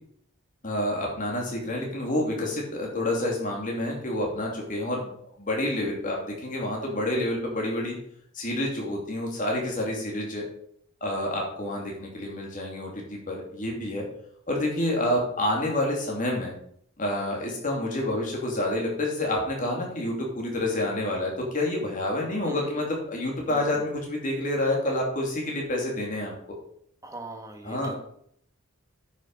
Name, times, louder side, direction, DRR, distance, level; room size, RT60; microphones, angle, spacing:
voice 1, 0.6-8.0 8.3-10.5 11.0-14.0 14.5-16.5 17.0-26.3 27.6-27.9, left 1 dB, 35° left, -1 dB, 2.9 m, -28 dB
voice 2, 22.4-22.8 23.5-23.8 27.0-28.0, right 2 dB, 15° right, 4 dB, 1.3 m, -41 dB
9.8 x 6.2 x 5.5 m, 0.68 s
head